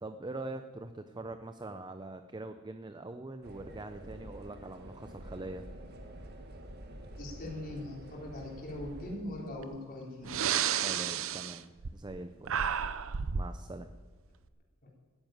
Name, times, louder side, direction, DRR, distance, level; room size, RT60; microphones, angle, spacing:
voice 1, 0.0-5.7 10.7-12.6 13.3-13.9, right 2 dB, 20° right, 8 dB, 0.6 m, -43 dB
sound 1, 3.4-9.2, right 1 dB, 50° right, 1.5 m, -48 dB
voice 2, 7.2-10.4 14.8-14.9, left 1 dB, 45° left, -3 dB, 4.3 m, -41 dB
Breathing, 9.6-9.7 10.2-12.2 12.4-13.5, right 8 dB, 65° right, 0.7 m, -32 dB
13.0 x 9.7 x 9.4 m, 1.4 s
head